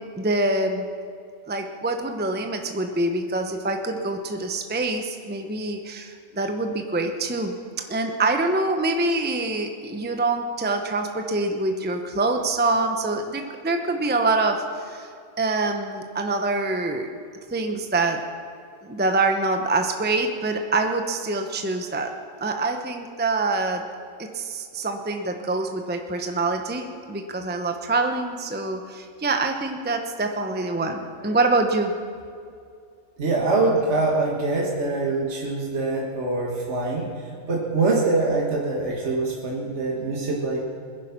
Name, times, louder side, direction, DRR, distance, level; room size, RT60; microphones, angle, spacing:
voice 1, 0.2-0.9 1.5-7.5 7.9-15.1 15.4-17.1 17.5-18.2 18.8-22.1 22.4-23.9 24.2-31.9, right 2 dB, 10° right, 5 dB, 0.9 m, -25 dB
voice 2, 33.2-40.7, right 3 dB, 60° right, -2 dB, 2.0 m, -24 dB
20.5 x 10.5 x 6.0 m, 2.3 s
omnidirectional pair, 1.3 m